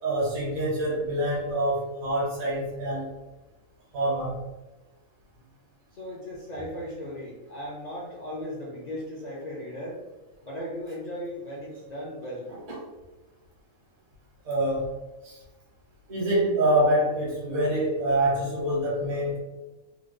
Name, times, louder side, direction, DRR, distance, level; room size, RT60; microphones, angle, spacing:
voice 1, 0.0-3.1 3.9-4.4 12.7-12.8 14.4-14.9 15.2-15.4 16.1-19.4, right 1 dB, 75° right, -5 dB, 1.5 m, -26 dB
voice 2, 5.9-10.0 10.4-12.5, equal, 55° left, -5 dB, 0.4 m, -37 dB
3.6 x 2.0 x 3.2 m, 1.1 s
omnidirectional pair, 1.5 m